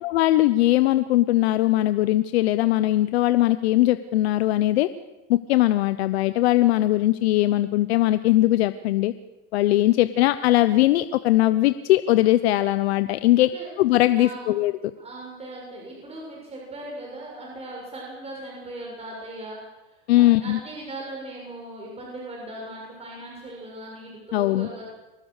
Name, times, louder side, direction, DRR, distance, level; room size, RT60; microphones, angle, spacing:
voice 1, 0.0-4.9 5.3-9.1 9.5-13.5 13.8-14.7 20.1-20.6 24.3-24.7, left 16 dB, 90° left, 12 dB, 0.9 m, -20 dB
voice 2, 14.1-14.6 15.0-24.8, right 1 dB, 20° right, -2 dB, 7.1 m, -39 dB
24.0 x 20.0 x 6.6 m, 1.1 s
supercardioid pair, 125°, 31 cm